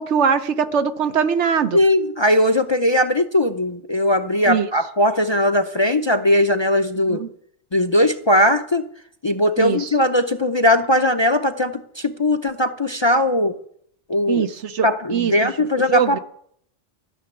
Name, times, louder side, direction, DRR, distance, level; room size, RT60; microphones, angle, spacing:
voice 1, 0.0-1.8 4.5-4.7 7.1-7.3 9.6-9.9 14.3-15.5 15.9-16.2, right 7 dB, 75° right, 1.2 m, -21 dB
voice 2, 1.7-7.2 7.7-8.8 9.2-13.5 14.1-14.5 14.8-16.2, left 1 dB, 30° left, 0.5 m, -19 dB
13.5 x 6.9 x 9.4 m
omnidirectional pair, 1.2 m